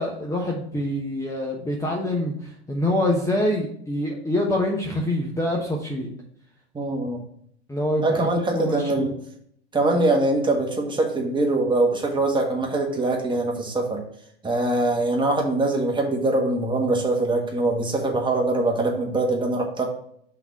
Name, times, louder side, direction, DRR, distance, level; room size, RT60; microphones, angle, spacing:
voice 1, 0.0-6.1 7.7-8.3 8.5-8.9, left 1 dB, 10° left, -1 dB, 1.1 m, -25 dB
voice 2, 6.7-7.2 8.0-9.1 9.7-14.0 14.4-19.8, right 2 dB, 15° right, 1 dB, 1.6 m, -23 dB
5.8 x 4.2 x 5.9 m, 0.66 s
hypercardioid pair, 95°, 33 cm